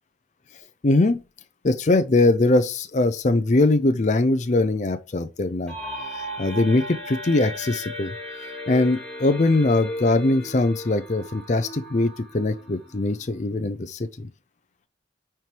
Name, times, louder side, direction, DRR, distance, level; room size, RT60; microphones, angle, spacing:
voice 1, 0.8-1.2 1.6-5.7 6.1-8.1 8.7-14.3, left 2 dB, 40° left, 0.5 m, -21 dB
sound 1, 5.7-13.3, equal, 5° left, 3.0 m, -36 dB
9.2 x 4.5 x 3.3 m
head